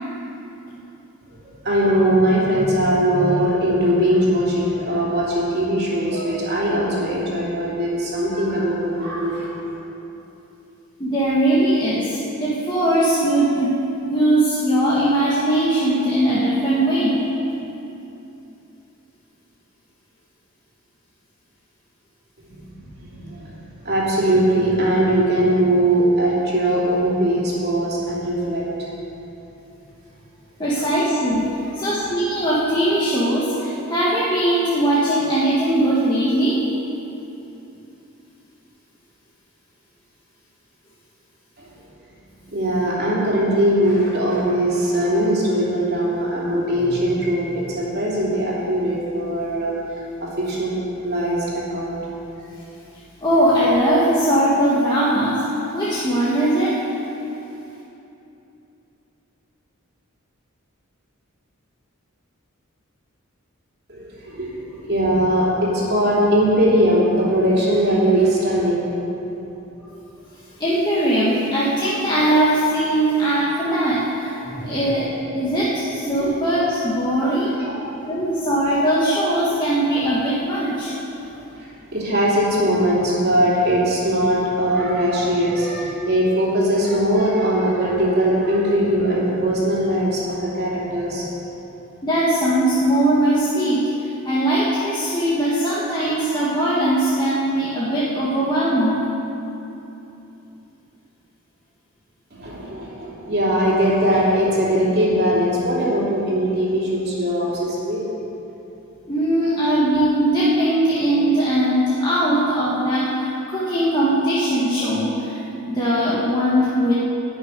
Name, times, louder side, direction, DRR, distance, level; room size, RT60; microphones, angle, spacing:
voice 1, 1.4-9.5 22.4-23.6 23.8-28.6 41.6-41.7 42.5-49.7 50.2-50.8 51.0-52.0 63.9-68.9 74.4-74.9 76.2-76.4 77.1-77.8 81.2-91.3 102.3-108.0, right 1 dB, 50° right, -6 dB, 3.0 m, -20 dB
voice 2, 11.0-13.8 14.0-17.2 30.6-36.6 53.2-55.4 55.7-56.8 69.9-70.0 70.6-74.3 74.6-75.0 75.3-77.5 78.1-80.9 92.0-93.9 94.2-99.1 109.1-116.9, right 1 dB, 20° left, -8 dB, 1.6 m, -20 dB
12.0 x 6.4 x 9.5 m, 3.0 s
head